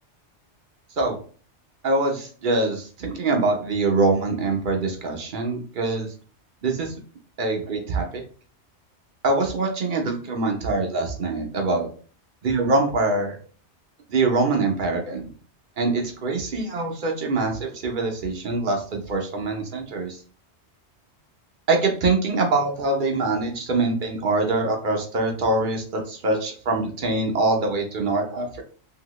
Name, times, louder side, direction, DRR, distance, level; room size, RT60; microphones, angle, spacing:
voice 1, 1.8-6.1 6.6-6.9 7.4-8.2 9.2-11.9 12.4-13.4 14.1-15.3 15.8-20.2 21.7-28.6, right 3 dB, 50° right, 2 dB, 0.8 m, -24 dB
2.8 x 2.7 x 3.0 m, 0.41 s
omnidirectional pair, 1.2 m